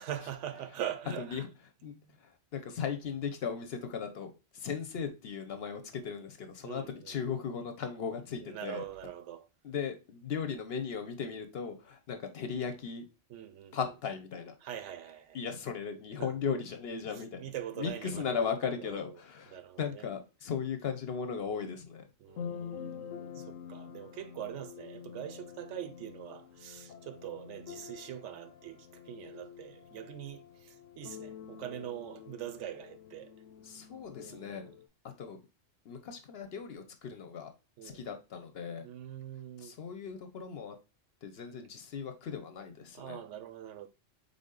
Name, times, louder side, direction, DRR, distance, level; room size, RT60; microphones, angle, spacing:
voice 1, 0.0-1.5 1.9-2.2 6.6-7.2 8.4-9.5 13.3-13.8 14.6-15.5 16.2-16.3 17.1-19.2 19.5-20.1 22.2-33.3 34.2-34.8 37.8-38.1 38.8-39.7 42.9-43.9, right 11 dB, 75° right, 0.9 m, -43 dB
voice 2, 1.8-8.8 9.6-13.1 13.7-14.5 15.3-17.4 17.8-22.1 23.3-23.4 33.6-34.7 35.0-35.4 35.8-37.5 37.8-38.9 39.6-40.8 41.2-43.2, left 6 dB, 60° left, 0.8 m, -37 dB
sound 1, 22.3-34.9, left 8 dB, 90° left, 1.1 m, -47 dB
3.9 x 3.7 x 3.7 m
omnidirectional pair, 1.3 m